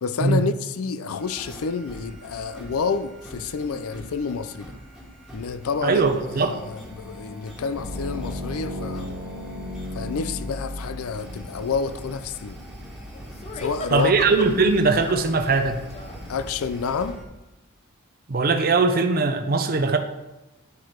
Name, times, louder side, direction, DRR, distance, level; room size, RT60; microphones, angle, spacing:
voice 1, 0.0-4.7 5.3-6.0 6.4-9.1 9.9-12.6 13.5-14.1 16.3-17.2, left 5 dB, 75° left, 0.4 m, -29 dB
sound 1, 1.2-17.2, equal, ahead, 1.5 m, -42 dB
voice 2, 5.8-6.6 13.9-15.8 18.3-20.0, right 3 dB, 40° right, 0.5 m, -20 dB
sound 2, 7.7-12.0, left 1 dB, 80° right, 1.3 m, -34 dB
sound 3, 13.1-14.7 15.0-16.2 16.9-17.0, left 3 dB, 30° left, 0.6 m, -36 dB
9.7 x 4.6 x 4.5 m
head